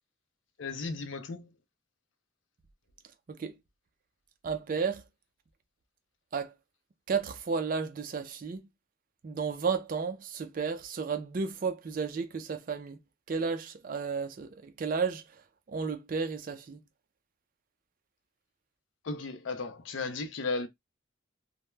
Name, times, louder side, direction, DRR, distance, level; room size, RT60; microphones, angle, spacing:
voice 1, 0.6-1.5 19.0-20.7, left 3 dB, 70° left, 0.5 m, -35 dB
voice 2, 4.4-5.1 6.3-6.5 7.1-8.7 9.2-13.0 13.3-15.2 15.7-16.8, right 5 dB, 45° right, 0.3 m, -33 dB
2.2 x 2.0 x 3.1 m
head